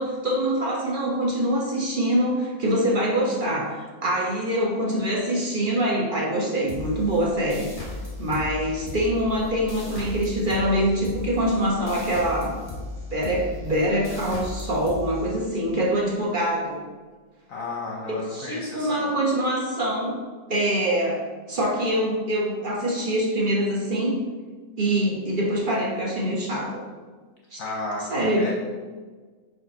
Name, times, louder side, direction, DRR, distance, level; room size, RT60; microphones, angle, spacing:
voice 1, 0.0-7.7 8.2-12.5 13.1-16.8 18.1-20.2 20.5-21.2 21.5-24.2 24.8-26.8 27.5-27.6 28.1-28.5, right 1 dB, 35° right, -4 dB, 1.0 m, -24 dB
sound 1, 6.7-15.9, left 2 dB, 15° left, 0.8 m, -36 dB
voice 2, 17.5-19.1 27.6-28.5, left 2 dB, 60° left, -2 dB, 1.0 m, -33 dB
4.9 x 4.7 x 4.3 m, 1.4 s
omnidirectional pair, 1.9 m